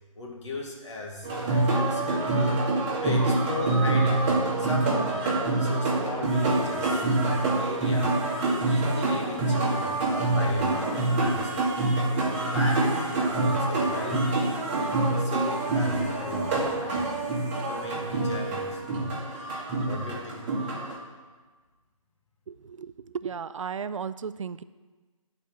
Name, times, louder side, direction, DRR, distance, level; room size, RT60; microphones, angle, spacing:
voice 1, 0.1-2.6 3.0-8.1 8.6-11.8 12.5-14.2 14.7-14.9 15.2-17.1 17.7-19.3 19.8-20.5, left 2 dB, 55° left, -2 dB, 2.0 m, -37 dB
sound 1, 1.2-20.9, right 2 dB, 20° right, 1.5 m, -26 dB
voice 2, 22.5-24.6, right 6 dB, 65° right, 14 dB, 0.4 m, -35 dB
10.0 x 4.4 x 6.1 m, 1.3 s
figure-of-eight pair, 150°, 18 cm